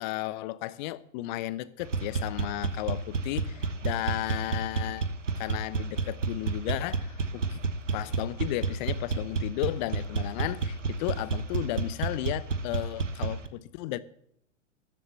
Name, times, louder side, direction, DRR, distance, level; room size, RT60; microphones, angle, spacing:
voice 1, 0.0-5.1 5.4-7.6 7.9-14.0, left 16 dB, 40° left, 0.7 m, -34 dB
sound 1, 1.8-13.5, right 4 dB, 85° right, 1.1 m, -31 dB
13.0 x 7.9 x 7.4 m
figure-of-eight pair, 100°, 36 cm